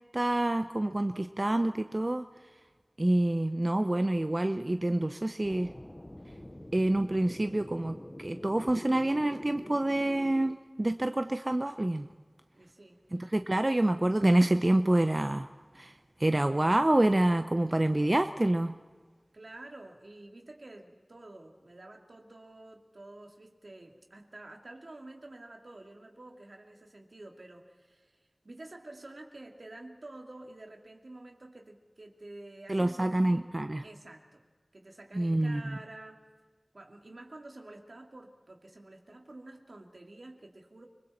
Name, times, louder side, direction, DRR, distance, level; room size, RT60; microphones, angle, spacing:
voice 1, 0.1-2.3 3.0-5.7 6.7-12.1 13.1-15.5 15.7-15.9 16.2-18.7 32.7-33.8 35.1-35.8, right 1 dB, 40° right, 8 dB, 0.7 m, -27 dB
sound 1, 5.4-10.6, left 1 dB, 25° left, 0.9 m, -45 dB
voice 2, 12.5-13.3 19.3-33.5 33.8-34.4 34.7-36.3 36.7-40.9, right 2 dB, 80° right, 2 dB, 2.6 m, -49 dB
30.0 x 21.0 x 4.4 m, 1.5 s
wide cardioid pair, 45°, 0 cm